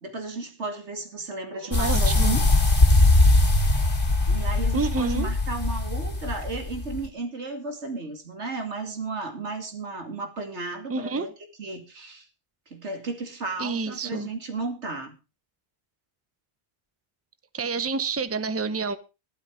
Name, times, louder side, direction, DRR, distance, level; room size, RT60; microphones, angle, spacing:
voice 1, 0.0-2.4 4.3-11.3 11.6-12.3 12.7-15.1, right 3 dB, 90° right, 2.8 m, -34 dB
voice 2, 1.6-2.4 4.7-5.3 10.9-11.3 13.6-14.3 17.5-19.0, right 4 dB, 15° right, 0.8 m, -28 dB
sound 1, 1.7-7.1, left 2 dB, 50° left, 2.4 m, -21 dB
12.5 x 12.0 x 4.9 m
omnidirectional pair, 1.1 m